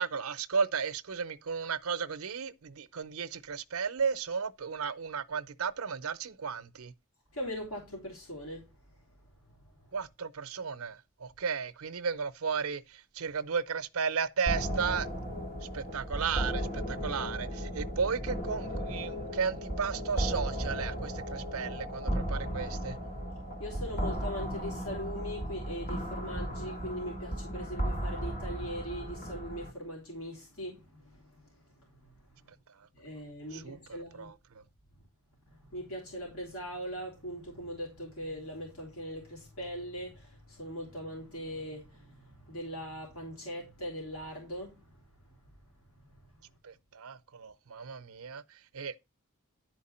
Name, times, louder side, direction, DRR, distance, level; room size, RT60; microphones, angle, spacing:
voice 1, 0.0-6.9 9.9-15.1 15.7-23.0 33.5-34.6 46.6-48.9, right 6 dB, 80° right, 0.6 m, -34 dB
voice 2, 7.3-8.7 9.8-9.9 15.5-15.8 23.6-32.3 32.9-34.3 35.5-45.4 45.9-46.1, equal, 85° left, 3.4 m, -41 dB
sound 1, 14.5-29.7, equal, 40° left, 1.7 m, -35 dB
10.5 x 4.6 x 4.2 m
head